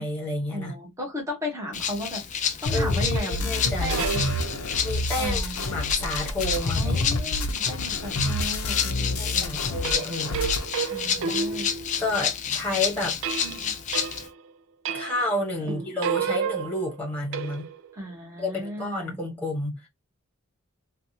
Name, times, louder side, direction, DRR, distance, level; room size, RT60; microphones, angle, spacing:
voice 1, 0.0-0.7 2.7-4.0 4.8-7.3 9.2-10.4 11.2-11.4 12.0-13.2 14.9-17.7 18.4-19.9, left 1 dB, 10° left, 1.2 m, -30 dB
voice 2, 0.5-2.2 2.6-4.4 5.2-5.6 6.7-9.6 10.9-11.7 13.4-13.7 15.6-15.9 17.9-19.2, left 1 dB, 15° right, 1.1 m, -35 dB
Rattle (instrument), 1.7-14.3, left 7 dB, 35° left, 0.4 m, -30 dB
sound 1, 2.7-9.9 10.2-10.7, left 2 dB, 90° left, 0.7 m, -28 dB
sound 2, 3.5-4.9 9.8-12.3 13.2-14.5 14.8-15.4 15.7-17.9, right 6 dB, 65° right, 0.4 m, -32 dB
3.3 x 2.4 x 2.7 m
head